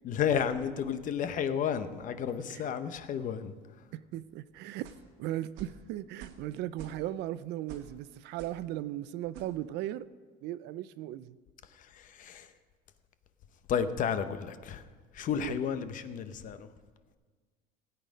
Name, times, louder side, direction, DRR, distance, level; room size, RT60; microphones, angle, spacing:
voice 1, 0.0-3.5 11.7-12.5 13.7-14.8 15.1-16.7, left 8 dB, 40° left, 11 dB, 0.7 m, -32 dB
voice 2, 3.9-4.9 5.2-10.1 10.4-11.4 15.3-15.6, right 13 dB, 60° right, 16 dB, 0.4 m, -37 dB
sound 1, 4.8-5.1 5.6-5.8 6.2-6.5 6.7-7.2 7.7-7.9 8.4-8.6 9.3-9.5, right 8 dB, 75° right, 1.4 m, -48 dB
16.5 x 8.4 x 5.1 m, 1.5 s
cardioid pair, 135°, 20 cm